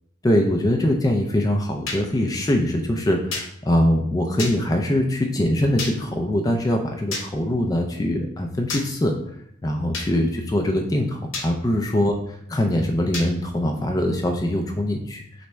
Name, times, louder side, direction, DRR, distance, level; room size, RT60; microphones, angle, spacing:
voice 1, 0.2-9.1 9.6-12.1 12.5-15.5, left 1 dB, 20° left, 2 dB, 0.3 m, -22 dB
sound 1, 1.9-2.0 3.3-3.5 4.4-4.5 5.8-5.9 7.1-7.3 8.7-8.8 9.9-10.1 11.3-11.5 13.1-13.3, left 3 dB, 85° left, 0.8 m, -29 dB
3.9 x 3.4 x 3.2 m, 0.69 s
head